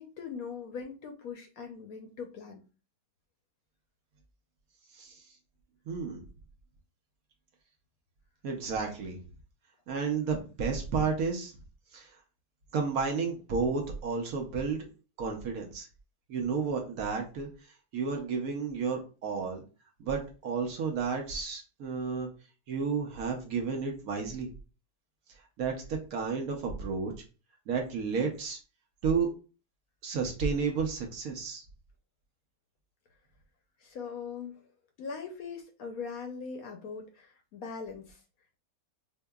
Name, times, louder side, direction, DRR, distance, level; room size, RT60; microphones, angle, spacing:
voice 1, 0.0-2.6 33.8-34.7 35.0-38.2, left 5 dB, 70° left, 4 dB, 0.9 m, -41 dB
voice 2, 4.9-5.2 5.9-6.2 8.4-9.2 9.9-11.5 11.9-12.1 12.7-14.9 15.2-15.9 16.3-17.5 17.9-19.6 20.0-22.3 22.7-24.5 25.6-27.1 27.7-28.6 29.0-29.3 30.0-31.6, right 5 dB, 65° right, 2 dB, 1.0 m, -32 dB
4.5 x 2.7 x 2.3 m, 0.34 s
omnidirectional pair, 1.8 m